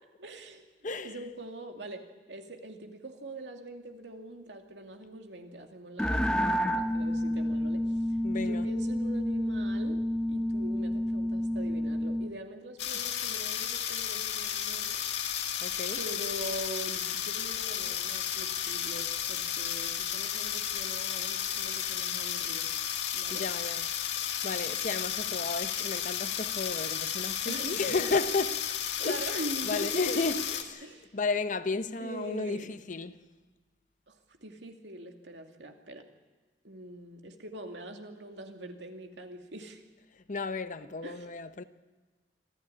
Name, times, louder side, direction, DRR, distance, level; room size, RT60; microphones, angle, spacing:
voice 1, 0.2-2.0 2.3-6.3 6.5-7.8 8.1-10.0 10.3-15.0 16.0-22.7 23.1-23.4 27.5-28.2 29.0-30.2 30.8-31.2 32.0-32.7 34.1-36.0 36.6-39.8 41.0-41.3, right 1 dB, 85° right, 2.5 m, -43 dB
voice 2, 0.8-1.1 8.2-8.7 15.6-16.0 23.3-28.7 29.0-29.4 29.6-30.9 31.1-33.2 40.3-41.6, left 3 dB, 45° left, 0.9 m, -33 dB
sound 1, 6.0-12.3, equal, 5° left, 1.0 m, -29 dB
sound 2, 12.8-30.6, left 9 dB, 85° left, 1.8 m, -33 dB
26.0 x 14.0 x 9.9 m
head